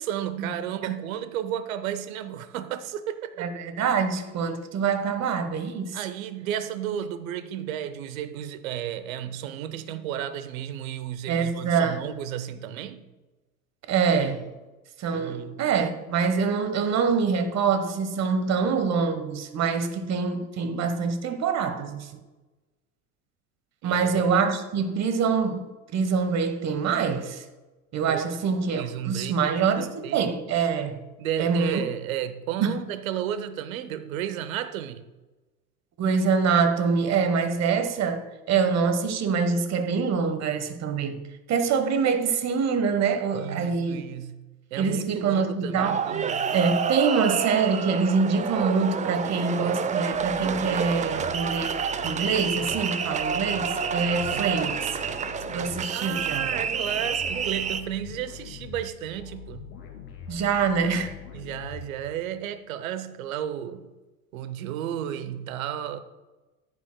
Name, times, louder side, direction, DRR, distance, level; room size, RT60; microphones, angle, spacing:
voice 1, 0.0-3.5 5.9-13.0 15.1-15.7 23.8-24.2 28.1-28.3 28.8-30.3 31.2-35.1 43.3-46.5 54.2-54.6 55.9-59.7 61.3-63.9 64.3-66.0, right 10 dB, 70° right, 0.9 m, -33 dB
voice 2, 3.4-6.0 11.3-12.0 13.9-14.5 15.0-22.2 23.8-27.4 27.9-31.1 31.4-31.8 32.6-32.8 36.0-44.1 44.8-46.0 46.5-54.9 55.5-56.5 60.3-61.1, right 5 dB, 40° right, 1.2 m, -25 dB
sound 1, 45.8-57.8, right 6 dB, 20° right, 0.5 m, -29 dB
sound 2, 50.1-62.4, left 7 dB, 60° left, 2.7 m, -43 dB
14.0 x 10.5 x 2.2 m
hypercardioid pair, 75°, 43 cm